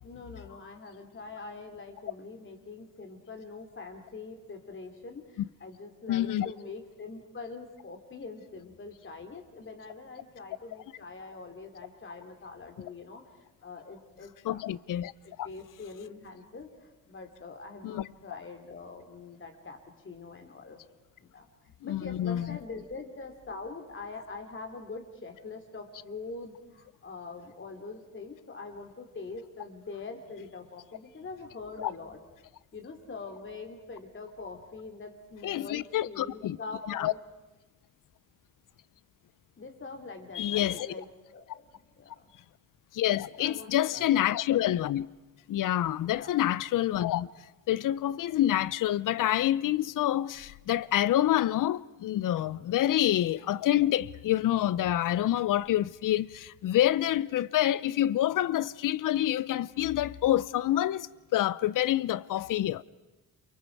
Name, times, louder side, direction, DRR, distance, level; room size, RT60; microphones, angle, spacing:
voice 1, 0.0-13.2 13.6-14.6 15.0-16.7 17.1-19.8 20.0-20.8 21.2-32.2 32.7-37.2 39.6-41.1 41.3-42.3 43.4-44.3 46.0-46.4, left 3 dB, 35° left, 3.1 m, -44 dB
voice 2, 6.1-6.5 14.4-15.1 17.8-18.0 21.8-22.6 31.8-31.9 35.4-36.6 36.9-37.1 40.3-40.9 42.9-45.1 45.5-47.3 47.7-62.8, left 13 dB, 60° left, 0.6 m, -27 dB
28.5 x 24.0 x 4.7 m
cardioid pair, 115°, 36 cm